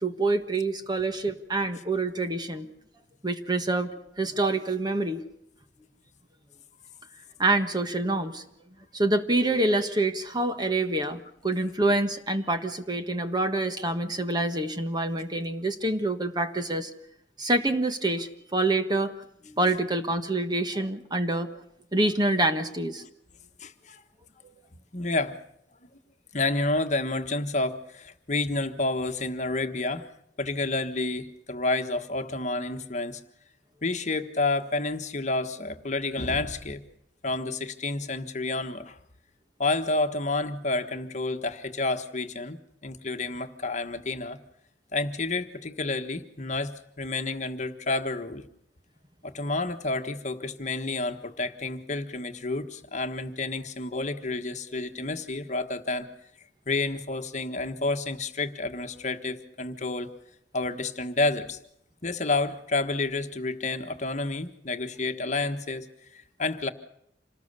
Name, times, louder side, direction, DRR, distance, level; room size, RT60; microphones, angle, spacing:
voice 1, 0.0-2.7 3.2-3.9 4.2-5.2 7.4-8.5 8.9-16.9 17.4-19.1 19.4-21.5 21.9-23.0, right 2 dB, 25° right, 7 dB, 1.5 m, -26 dB
voice 2, 23.6-24.0 24.9-25.4 26.3-30.1 30.4-33.2 33.8-36.8 37.2-39.0 39.6-44.4 44.9-48.4 49.2-56.1 56.7-60.1 60.5-61.6 62.0-66.7, left 2 dB, 40° left, 7 dB, 1.5 m, -30 dB
27.0 x 19.5 x 6.9 m, 0.75 s
head